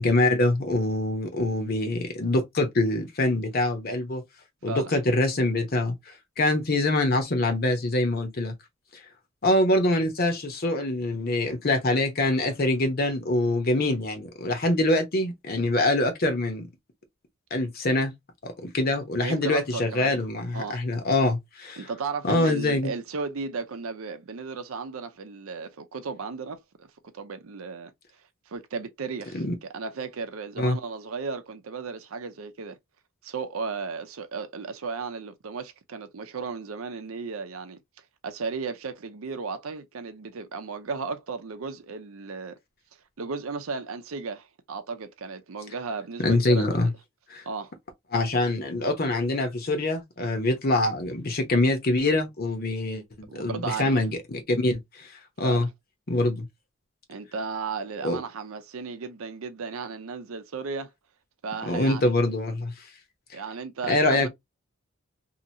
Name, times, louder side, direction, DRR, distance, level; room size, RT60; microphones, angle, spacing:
voice 1, 0.0-4.2 4.6-8.5 9.4-16.7 17.5-18.1 18.4-21.8 22.2-22.9 29.3-29.5 30.6-30.8 46.2-46.9 47.3-47.4 48.1-55.1 55.4-55.7 56.1-56.5 58.0-58.2 61.7-62.7 63.9-64.3, left 2 dB, 45° left, 0.9 m, -24 dB
voice 2, 19.2-20.1 20.5-20.8 21.8-26.9 27.1-27.9 28.5-32.8 33.2-37.8 38.2-42.6 43.2-46.7 47.5-47.7 53.3-54.0 55.4-55.7 57.1-60.9 61.4-62.1 63.3-64.3, right 4 dB, 85° right, 0.6 m, -35 dB
2.8 x 2.6 x 2.8 m
head